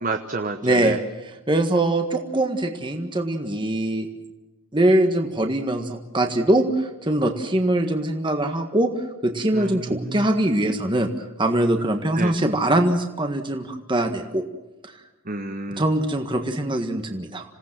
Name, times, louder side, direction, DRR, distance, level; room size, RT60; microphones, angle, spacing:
voice 1, 0.0-1.0 9.5-10.3 12.2-12.3 15.3-15.8, right 3 dB, 40° right, 6 dB, 1.1 m, -29 dB
voice 2, 0.6-4.1 4.7-14.4 14.8-14.9 15.7-17.4, right 1 dB, 25° right, 5 dB, 1.6 m, -22 dB
27.5 x 17.5 x 7.5 m, 1.1 s
head